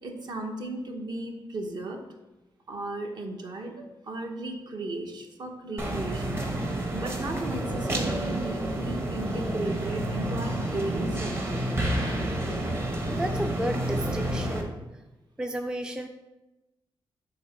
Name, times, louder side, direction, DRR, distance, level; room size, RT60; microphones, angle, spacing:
voice 1, 0.0-2.0 2.7-6.4 6.9-11.8, right 2 dB, 55° right, 3 dB, 0.9 m, -35 dB
sound 1, 5.8-14.6, right 1 dB, 25° right, 0.9 m, -29 dB
voice 2, 13.1-14.8 15.4-16.1, right 1 dB, 10° right, 5 dB, 0.3 m, -32 dB
7.4 x 2.9 x 5.6 m, 1.0 s
wide cardioid pair, 125°, 9 cm